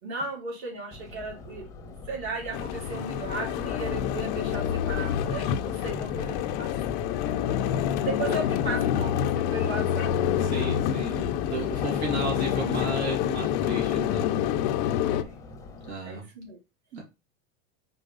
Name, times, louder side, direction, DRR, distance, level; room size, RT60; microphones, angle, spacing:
voice 1, 0.0-7.0 8.0-10.2 15.1-15.4 16.0-16.6, right 3 dB, 45° right, 3.1 m, -36 dB
Subway metro underground, 0.9-15.9, left 4 dB, 10° left, 0.8 m, -43 dB
sound 1, 2.5-15.2, left 10 dB, 30° left, 0.4 m, -27 dB
voice 2, 10.4-14.5 15.9-16.3 16.9-17.0, right 2 dB, 80° right, 2.9 m, -34 dB
4.6 x 4.1 x 5.3 m
supercardioid pair, 160°, 33 cm